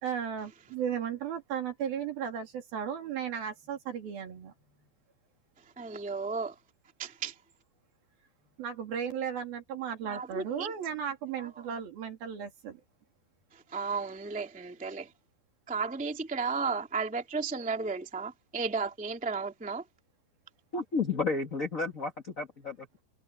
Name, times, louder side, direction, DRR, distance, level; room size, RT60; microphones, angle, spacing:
voice 1, 0.0-4.5 7.0-7.1 8.6-12.8, right 8 dB, 65° right, 4.7 m, -35 dB
voice 2, 5.8-6.5 7.0-7.3 10.0-10.7 11.4-11.5 13.7-15.1 15.7-19.8, right 4 dB, 5° right, 1.3 m, -34 dB
voice 3, 20.7-22.9, left 4 dB, 60° left, 0.8 m, -32 dB
omnidirectional pair, 4.7 m